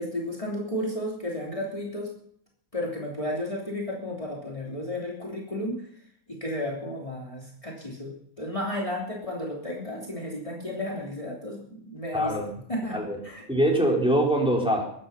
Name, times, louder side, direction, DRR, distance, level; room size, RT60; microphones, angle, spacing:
voice 1, 0.0-2.1 2.7-5.8 6.4-12.3 12.7-13.0 13.2-13.4, left 1 dB, 20° left, -3 dB, 3.2 m, -33 dB
voice 2, 12.1-12.6 12.9-13.2 13.5-14.9, right 1 dB, 5° right, -1 dB, 4.2 m, -23 dB
22.0 x 10.0 x 5.8 m, 0.66 s
omnidirectional pair, 1.5 m